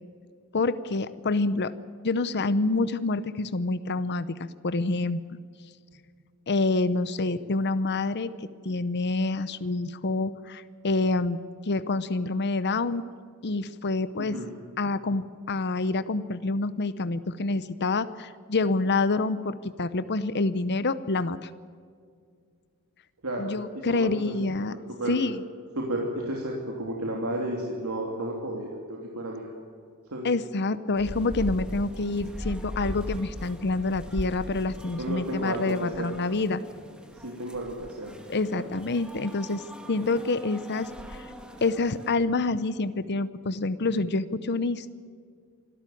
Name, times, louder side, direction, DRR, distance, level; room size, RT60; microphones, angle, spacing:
voice 1, 0.5-1.7 2.0-5.2 6.5-11.4 11.7-13.1 13.4-14.4 14.8-21.5 23.4-24.7 25.1-25.4 30.2-36.6 38.3-39.6 39.9-41.3 41.6-45.0, left 3 dB, 50° left, 14 dB, 0.8 m, -27 dB
voice 2, 14.2-14.5 23.2-25.2 25.8-29.5 30.1-30.3 35.0-36.1 37.2-38.1 38.5-38.7, right 1 dB, 75° right, -1 dB, 3.1 m, -33 dB
sound 1, 31.0-42.1, equal, 5° right, 2.2 m, -40 dB
25.5 x 13.0 x 9.2 m, 2.2 s
head